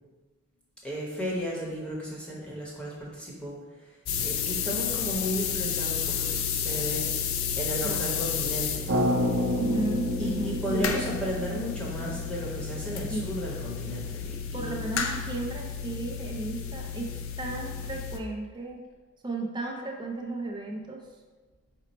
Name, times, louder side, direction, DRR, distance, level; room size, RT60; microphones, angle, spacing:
voice 1, 0.8-7.2 7.5-9.1 10.2-14.7 17.8-17.9, equal, 5° left, -5 dB, 0.8 m, -34 dB
sound 1, 4.1-18.2, left 7 dB, 70° left, 0.4 m, -32 dB
sound 2, 8.9-13.0, left 1 dB, 70° right, 0.6 m, -29 dB
voice 2, 9.5-11.0 13.1-13.4 14.5-18.8 19.2-21.0, right 2 dB, 20° right, 1 dB, 0.5 m, -34 dB
5.1 x 2.1 x 4.1 m, 1.3 s
head